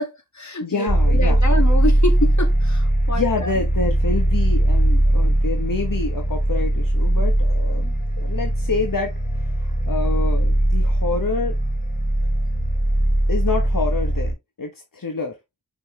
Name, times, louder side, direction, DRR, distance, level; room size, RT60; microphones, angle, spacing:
voice 1, 0.0-3.5, left 1 dB, 60° left, 2.2 m, -27 dB
voice 2, 0.6-1.4 3.1-9.1 9.6-11.6 13.3-15.4, left 4 dB, 80° left, 1.2 m, -27 dB
sound 1, 0.9-14.3, right 1 dB, 25° left, 4.2 m, -20 dB
5.8 x 5.4 x 3.3 m
wide cardioid pair, 50°, 33 cm